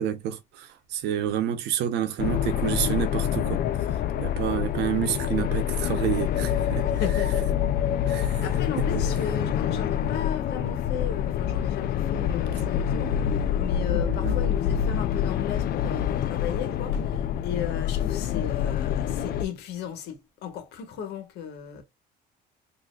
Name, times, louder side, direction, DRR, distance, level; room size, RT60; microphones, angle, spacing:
voice 1, 0.0-3.6 4.2-6.9 8.0-8.4 8.8-8.9 14.1-14.4, right 10 dB, 85° right, 0.9 m, -29 dB
sound 1, 2.2-19.4, left 9 dB, 60° left, 0.4 m, -26 dB
voice 2, 6.9-21.8, left 8 dB, 80° left, 1.3 m, -36 dB
4.1 x 2.8 x 2.4 m
cardioid pair, 110°, 17 cm